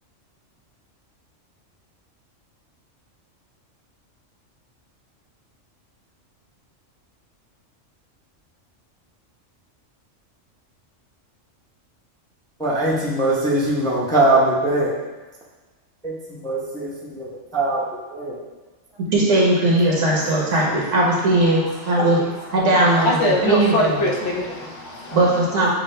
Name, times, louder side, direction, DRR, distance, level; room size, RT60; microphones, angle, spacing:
voice 1, 12.6-14.9 16.0-17.8 18.1-18.4 24.3-24.4, right 2 dB, 5° left, -6 dB, 0.5 m, -21 dB
voice 2, 19.1-22.2 22.5-23.1 23.4-24.0 25.1-25.7, right 1 dB, 70° right, -4 dB, 1.3 m, -18 dB
voice 3, 21.5-22.5 23.0-25.3, left 1 dB, 70° left, 0 dB, 0.9 m, -24 dB
6.5 x 2.3 x 3.2 m, 1.2 s
omnidirectional pair, 1.3 m